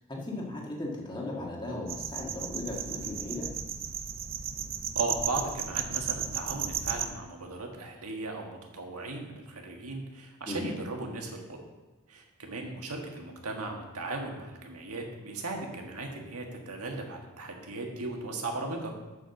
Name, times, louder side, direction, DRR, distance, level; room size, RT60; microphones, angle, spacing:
voice 1, 0.1-3.5 10.4-10.7, left 2 dB, 20° left, -2 dB, 1.7 m, -36 dB
sound 1, 1.9-7.1, right 8 dB, 45° right, 0.5 m, -34 dB
voice 2, 4.9-11.6 12.1-18.9, right 2 dB, 85° right, 2 dB, 1.7 m, -37 dB
6.8 x 6.7 x 7.0 m, 1.2 s
head